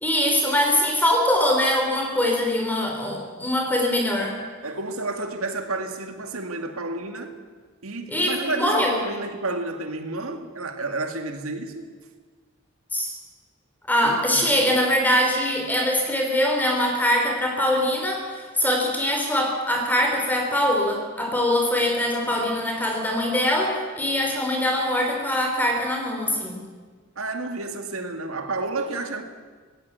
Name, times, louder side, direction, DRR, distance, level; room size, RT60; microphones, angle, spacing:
voice 1, 0.0-4.3 8.1-9.0 12.9-13.1 13.9-26.6, left 1 dB, 10° left, 3.2 m, -23 dB
voice 2, 4.6-7.3 7.8-11.8 14.0-14.8 27.2-29.2, right 2 dB, 80° right, 2.2 m, -31 dB
18.5 x 16.0 x 9.5 m
head